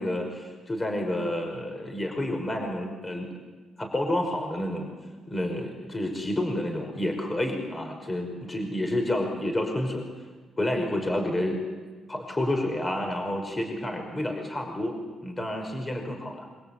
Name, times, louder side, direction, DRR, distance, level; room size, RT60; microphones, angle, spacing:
voice 1, 0.0-3.3 3.8-4.9 5.3-10.0 10.6-11.6 12.1-15.0 15.2-16.5, left 1 dB, 20° left, 4 dB, 5.5 m, -29 dB
26.0 x 24.5 x 8.7 m, 1.4 s
cardioid pair, 90°, 0 cm